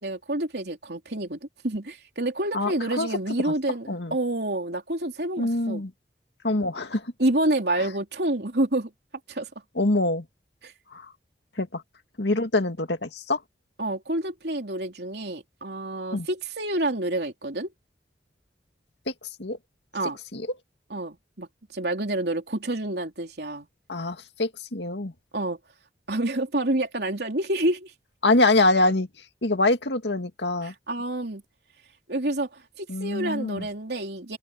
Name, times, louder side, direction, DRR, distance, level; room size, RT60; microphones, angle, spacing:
voice 1, 0.0-5.8 7.2-8.9 9.3-9.5 10.6-10.7 13.8-17.7 19.9-20.2 20.9-21.5 21.7-23.7 25.3-25.6 26.1-27.9 30.6-31.4 32.1-34.4, right 1 dB, 70° right, 3.3 m, -28 dB
voice 2, 2.5-3.1 3.9-4.1 5.4-5.9 6.4-7.1 9.8-10.2 10.9-11.1 11.6-11.8 12.2-13.4 16.1-16.3 19.1-19.2 19.4-19.6 20.3-20.5 23.9-25.1 28.2-29.1 29.4-30.7 32.9-33.7, left 2 dB, 80° left, 2.2 m, -24 dB
head